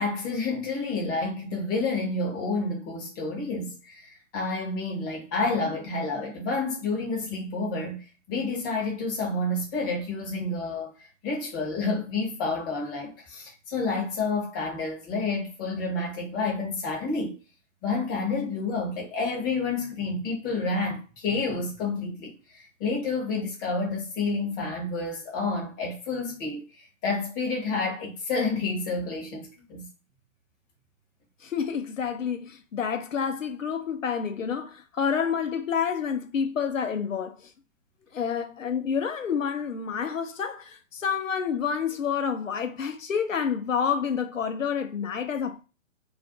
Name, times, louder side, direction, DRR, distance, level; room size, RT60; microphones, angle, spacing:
voice 1, 0.0-10.9 11.2-17.4 17.8-29.9, left 3 dB, 15° left, 0.6 m, -29 dB
voice 2, 31.4-37.5 38.1-45.6, left 7 dB, 85° left, 0.6 m, -29 dB
2.4 x 2.1 x 3.8 m
figure-of-eight pair, 135°, 38 cm